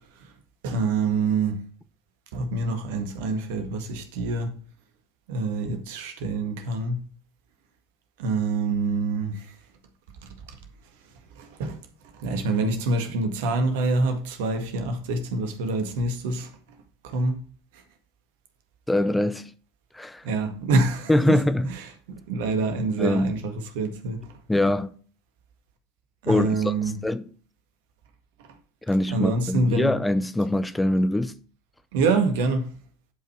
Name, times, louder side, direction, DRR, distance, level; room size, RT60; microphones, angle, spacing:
voice 1, 0.6-1.6 2.3-4.5 5.3-7.0 8.2-9.6 10.2-10.6 11.3-11.8 12.1-16.5 17.0-17.4 20.2-21.4 21.7-24.4 26.2-27.0 29.1-29.9 31.9-32.7, right 3 dB, 60° right, 1.8 m, -26 dB
voice 2, 18.9-19.5 19.9-20.2 21.1-21.7 23.0-23.3 24.5-24.9 26.3-26.7 27.0-27.2 28.9-31.3, left 1 dB, 5° left, 0.8 m, -23 dB
11.0 x 5.5 x 4.5 m
figure-of-eight pair, 75°, 0 cm